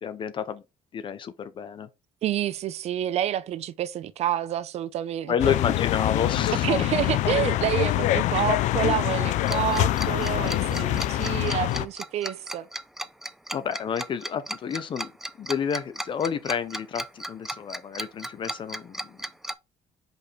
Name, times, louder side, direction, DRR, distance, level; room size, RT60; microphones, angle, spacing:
voice 1, 0.0-0.6 0.9-1.9 5.3-6.7 8.4-8.5 13.5-15.1 15.4-19.2, left 7 dB, 45° left, 0.7 m, -30 dB
voice 2, 2.2-5.5 6.5-12.7, right 11 dB, 60° right, 0.6 m, -28 dB
sound 1, 5.4-11.9, left 14 dB, 80° left, 0.5 m, -25 dB
Tick-tock, 9.5-19.5, right 1 dB, 5° right, 0.4 m, -35 dB
5.3 x 4.9 x 4.2 m
cardioid pair, 120°, 12 cm